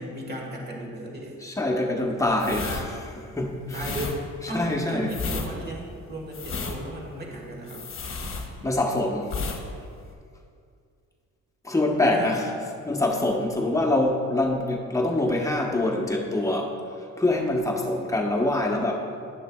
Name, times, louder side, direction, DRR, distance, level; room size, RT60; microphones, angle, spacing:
voice 1, 0.0-1.4 3.7-7.9 12.1-12.3, right 1 dB, 35° right, 0 dB, 1.5 m, -35 dB
voice 2, 1.4-4.0 4.5-5.1 8.2-9.4 11.6-12.5 12.8-19.1, left 2 dB, 10° left, 0 dB, 0.9 m, -25 dB
sound 1, 2.3-8.9 9.2-9.6 9.9-10.1, left 4 dB, 45° left, 1.0 m, -33 dB
11.5 x 6.5 x 2.3 m, 2.3 s
cardioid pair, 90°, 30 cm